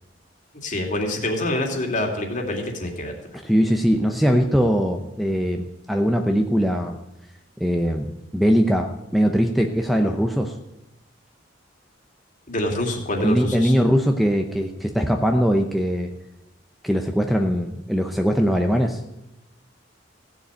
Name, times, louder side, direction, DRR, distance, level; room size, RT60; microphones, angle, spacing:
voice 1, 0.6-3.1 12.5-13.7, left 1 dB, 40° left, 2 dB, 2.7 m, -26 dB
voice 2, 3.3-7.0 7.6-10.5 13.2-16.1 16.8-19.0, equal, ahead, 4 dB, 0.7 m, -21 dB
16.0 x 7.1 x 9.0 m, 0.93 s
head